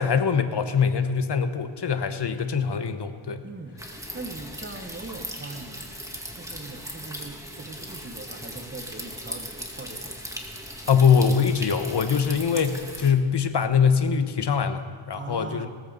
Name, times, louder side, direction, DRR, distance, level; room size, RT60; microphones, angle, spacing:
voice 1, 0.0-3.4 10.9-15.7, left 6 dB, 55° left, 9 dB, 1.1 m, -23 dB
voice 2, 3.4-3.8 4.1-5.9 6.3-10.2 15.1-15.7, right 3 dB, 25° right, 6 dB, 1.4 m, -40 dB
sound 1, 3.8-13.1, equal, 5° right, 2.1 m, -38 dB
18.0 x 14.5 x 4.0 m, 2.1 s
wide cardioid pair, 80°, 49 cm